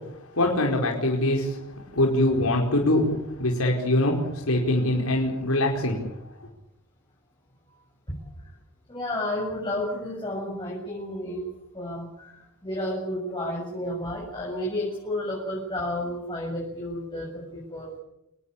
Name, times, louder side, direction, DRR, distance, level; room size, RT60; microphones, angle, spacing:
voice 1, 0.3-1.6 1.9-3.0 3.4-6.0, left 1 dB, 85° left, 0 dB, 5.0 m, -23 dB
voice 2, 8.9-11.4 11.7-18.0, left 1 dB, 20° left, -3 dB, 7.8 m, -31 dB
27.0 x 20.0 x 8.7 m, 0.84 s
head